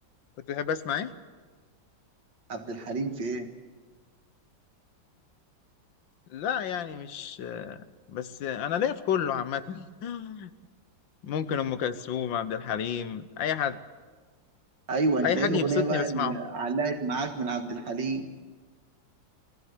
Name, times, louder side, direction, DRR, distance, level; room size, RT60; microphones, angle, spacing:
voice 1, 0.5-1.1 6.3-10.5 11.2-13.8 15.2-16.4, left 8 dB, 80° left, 13 dB, 1.7 m, -30 dB
voice 2, 2.5-3.5 14.9-18.3, right 3 dB, 70° right, 5 dB, 2.4 m, -29 dB
23.0 x 15.0 x 9.6 m, 1.4 s
omnidirectional pair, 2.1 m